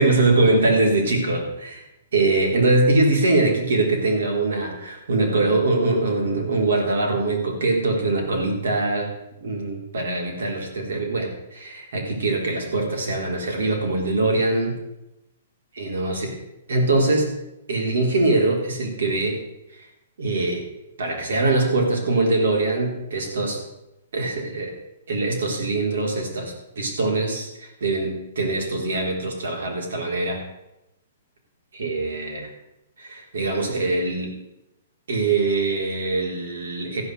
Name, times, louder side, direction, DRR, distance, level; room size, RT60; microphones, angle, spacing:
voice 1, 0.0-1.8 2.1-9.1 9.4-14.8 15.7-16.4 16.7-17.3 17.7-19.4 20.2-20.6 21.0-23.6 24.1-24.7 25.1-30.4 31.7-32.5 33.0-34.4 35.1-37.0, right 2 dB, 80° right, 1 dB, 4.0 m, -22 dB
14.5 x 5.8 x 8.0 m, 0.91 s
hypercardioid pair, 150°, 0 cm